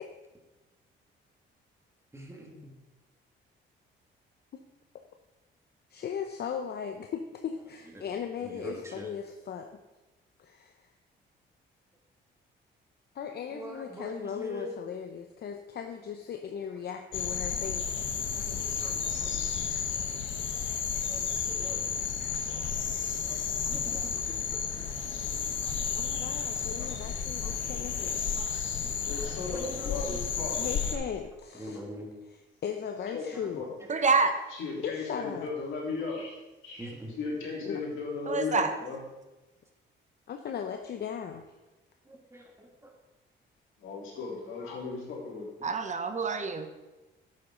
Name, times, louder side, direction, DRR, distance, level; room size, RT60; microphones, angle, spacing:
voice 1, 2.1-2.7 7.9-8.1 8.4-9.1 13.5-14.8 18.1-19.5 19.9-20.0 20.6-22.1 23.3-24.1 25.6-25.7 26.8-27.0 27.4-27.5 28.1-28.6 29.0-29.9 30.6-30.7 31.6-32.1 33.3-33.5 36.8-37.1 42.1-42.7, right 1 dB, 15° right, 0 dB, 2.4 m, -45 dB
voice 2, 5.9-9.7 10.4-10.7 13.1-18.1 25.9-28.2 30.6-31.8 32.6-33.7 34.8-35.5 37.6-37.8 40.3-41.4, left 7 dB, 55° left, 5 dB, 0.8 m, -37 dB
sound 1, 17.1-31.0, left 7 dB, 70° left, 1.2 m, -32 dB
voice 3, 29.1-30.7 33.1-33.2 33.5-33.7 34.5-36.4 36.6-39.0 43.8-45.5, left 4 dB, 85° left, -4 dB, 3.7 m, -36 dB
voice 4, 33.9-34.3 38.3-38.8 45.6-46.7, right 4 dB, 35° right, 8 dB, 1.0 m, -27 dB
11.0 x 8.7 x 3.9 m, 1.1 s
cardioid pair, 90°, 20 cm